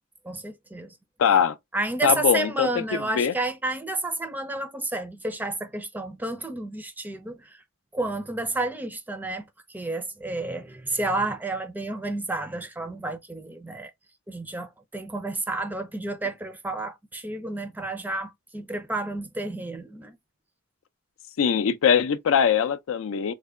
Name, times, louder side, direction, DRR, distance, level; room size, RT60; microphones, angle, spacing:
voice 1, 0.2-0.9 1.7-7.6 7.9-13.9 14.3-20.2, right 2 dB, 10° right, 0.4 m, -31 dB
voice 2, 1.2-1.5 2.0-2.8 3.1-3.3 21.4-23.3, left 7 dB, 75° left, 0.4 m, -21 dB
3.2 x 2.1 x 3.6 m
head